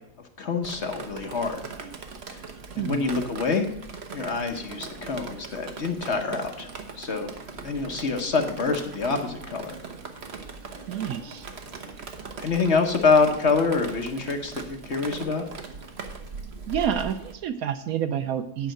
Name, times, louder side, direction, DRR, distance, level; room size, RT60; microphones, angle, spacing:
voice 1, 0.4-1.6 2.3-2.5 2.8-3.7 4.1-6.7 7.0-7.3 7.6-9.7 12.4-15.5, left 4 dB, 50° left, 5 dB, 1.0 m, -26 dB
Drip, 0.6-17.3, right 4 dB, 45° right, 1.1 m, -40 dB
voice 2, 10.9-11.5 16.7-18.7, right 9 dB, 70° right, 10 dB, 1.0 m, -28 dB
9.2 x 5.5 x 7.6 m, 0.79 s
omnidirectional pair, 1.7 m